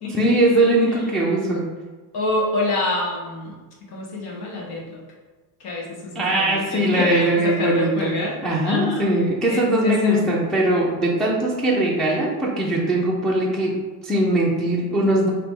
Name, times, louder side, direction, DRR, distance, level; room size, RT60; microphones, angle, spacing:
voice 1, 0.1-1.6 6.1-8.2 8.4-13.8 14.0-15.3, right 1 dB, ahead, -5 dB, 0.5 m, -20 dB
voice 2, 2.1-3.5 3.9-5.0 5.6-8.3 8.6-9.1 9.5-10.3, left 3 dB, 60° left, -3 dB, 1.4 m, -26 dB
4.8 x 2.9 x 3.7 m, 1.3 s
cardioid pair, 150°, 43 cm